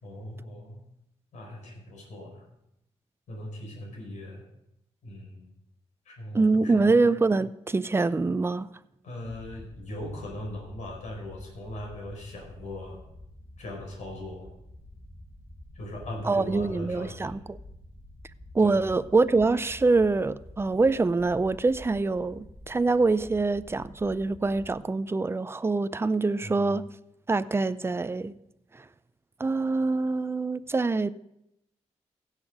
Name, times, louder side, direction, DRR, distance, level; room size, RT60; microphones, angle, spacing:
voice 1, 0.0-0.8 1.3-2.5 3.3-4.5 5.0-5.5 6.0-7.0 9.0-13.0 13.6-14.5 15.7-17.3 18.6-18.9 26.4-26.7, left 1 dB, 80° left, 4.5 m, -39 dB
voice 2, 6.3-8.7 16.2-17.6 18.5-26.8 27.3-28.3 29.4-31.1, right 3 dB, 20° right, 0.5 m, -25 dB
sound 1, 9.2-24.8, left 1 dB, 20° left, 5.1 m, -48 dB
16.0 x 6.6 x 5.1 m
cardioid pair, 80°, 12 cm